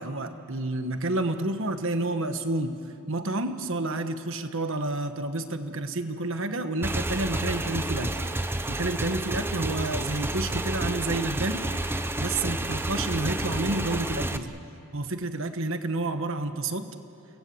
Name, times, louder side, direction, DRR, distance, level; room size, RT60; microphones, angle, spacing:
voice 1, 0.0-2.8 3.1-8.2 8.7-11.7 12.2-14.5 14.9-16.9, right 2 dB, 60° right, 8 dB, 1.4 m, -30 dB
Motorcycle / Engine, 6.8-14.4, right 1 dB, 10° right, 0.7 m, -30 dB
29.5 x 19.0 x 8.0 m, 2.8 s
head